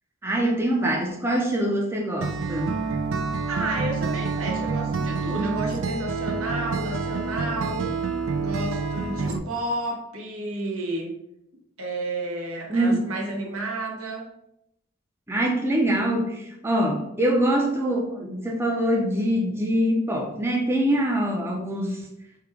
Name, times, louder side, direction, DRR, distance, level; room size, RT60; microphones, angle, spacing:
voice 1, 0.2-2.7 12.7-13.0 15.3-22.0, right 1 dB, 10° right, -1 dB, 0.5 m, -24 dB
Acoustic guitar, 2.2-9.4, right 4 dB, 70° right, 0.4 m, -28 dB
voice 2, 3.5-8.0 8.4-11.2 11.8-14.3, right 2 dB, 85° right, 1 dB, 0.9 m, -31 dB
3.7 x 2.2 x 4.4 m, 0.79 s
head